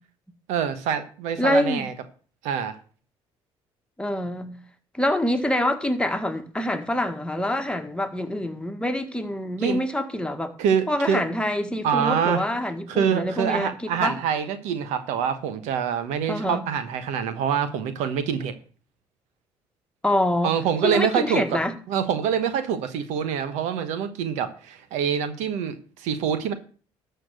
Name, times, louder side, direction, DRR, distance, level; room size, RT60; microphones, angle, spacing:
voice 1, 0.5-1.9 2.4-2.8 9.6-9.8 10.6-11.2 11.8-12.4 12.9-18.5 20.4-21.6 21.9-26.5, right 8 dB, 80° right, 1.2 m, -25 dB
voice 2, 1.4-1.9 4.0-4.5 4.9-10.5 10.9-14.2 16.3-16.6 20.0-20.6 20.8-21.7, left 1 dB, 10° left, 1.6 m, -25 dB
13.0 x 4.5 x 7.8 m
supercardioid pair, 65°, 12 cm